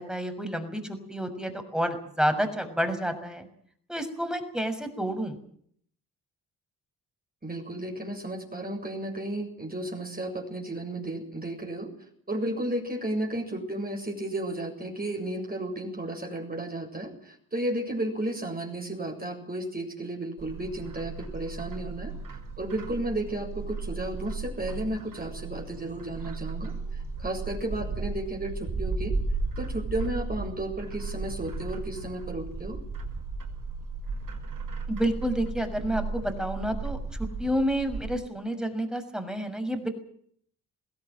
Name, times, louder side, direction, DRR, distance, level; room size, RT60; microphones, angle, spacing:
voice 1, 0.0-3.5 3.9-5.4 34.9-39.9, equal, ahead, 7 dB, 6.5 m, -29 dB
voice 2, 7.4-11.9 12.3-22.1 22.6-26.7 27.2-29.2 29.6-32.8, right 1 dB, 20° right, 1 dB, 7.5 m, -33 dB
Bird, 20.4-38.1, right 3 dB, 55° right, 6.3 m, -35 dB
22.0 x 16.5 x 9.3 m, 0.62 s
supercardioid pair, 55°, 39 cm